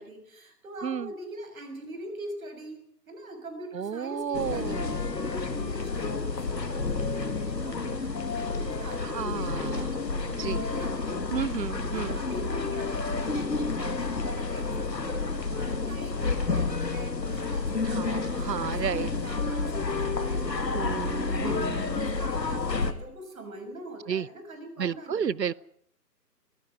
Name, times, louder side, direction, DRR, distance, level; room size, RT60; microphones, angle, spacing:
voice 1, 0.0-11.3 11.7-20.6 21.1-25.5, right 1 dB, 55° right, 6 dB, 6.9 m, -43 dB
voice 2, 3.7-4.9 9.1-9.7 10.4-10.6 11.3-12.2 17.9-19.1 20.7-21.9 24.1-24.3 24.8-25.5, right 7 dB, 75° right, 24 dB, 0.8 m, -32 dB
sound 1, 4.3-22.9, left 4 dB, 80° left, 2.1 m, -30 dB
20.5 x 15.5 x 9.4 m, 0.68 s
figure-of-eight pair, 140°, 50 cm